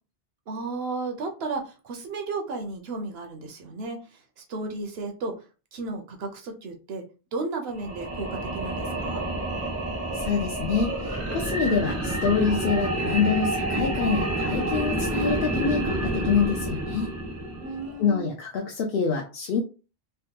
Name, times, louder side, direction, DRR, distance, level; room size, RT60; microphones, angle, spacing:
voice 1, 0.5-5.4 5.7-9.2 17.6-18.3, right 3 dB, 65° right, 5 dB, 0.8 m, -34 dB
sound 1, 7.7-18.1, right 1 dB, 20° right, 0.5 m, -29 dB
voice 2, 10.1-17.1 18.0-19.6, left 5 dB, 65° left, 0 dB, 0.7 m, -26 dB
3.4 x 2.1 x 2.8 m, 0.33 s
omnidirectional pair, 1.2 m